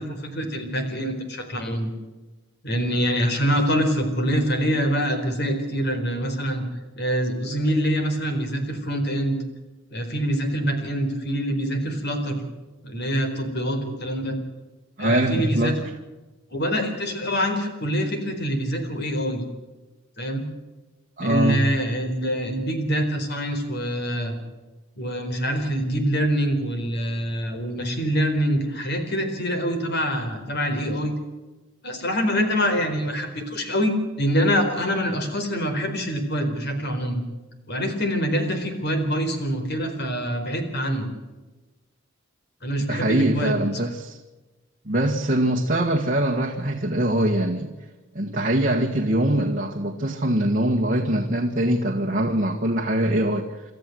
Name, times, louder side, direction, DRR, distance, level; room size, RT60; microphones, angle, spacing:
voice 1, 0.0-1.9 2.6-6.6 7.0-9.4 9.9-12.4 12.8-14.4 15.0-15.8 16.5-19.4 20.2-20.4 21.2-24.4 25.0-31.1 31.8-37.2 37.7-41.1 42.6-43.6, equal, 55° left, 4.3 m, -25 dB
voice 2, 15.0-15.8 21.2-21.6 42.9-44.2 44.9-47.7 48.2-53.6, right 1 dB, 45° right, 1.7 m, -23 dB
27.5 x 13.5 x 7.9 m
head